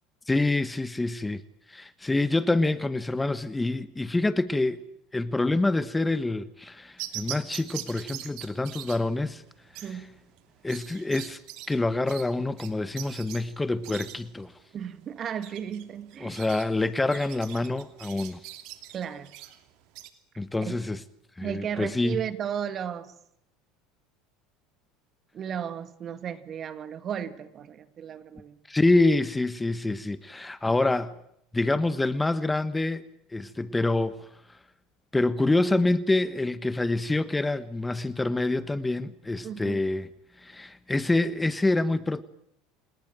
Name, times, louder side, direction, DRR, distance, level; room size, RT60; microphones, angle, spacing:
voice 1, 0.3-1.4 1.7-4.8 5.1-9.4 10.6-11.4 11.7-14.5 16.2-18.4 20.4-21.0 21.4-22.2 28.7-31.1 31.5-33.0 33.3-34.2 35.1-40.1 40.4-42.2, left 2 dB, 10° left, 1.2 m, -26 dB
sound 1, 7.0-20.1, right 15 dB, 65° right, 2.8 m, -43 dB
voice 2, 9.8-10.1 14.7-16.4 18.9-19.3 20.6-20.8 21.4-23.1 25.3-28.6 39.4-39.8, right 8 dB, 40° right, 2.1 m, -34 dB
27.5 x 20.5 x 9.1 m
supercardioid pair, 95°, 0 cm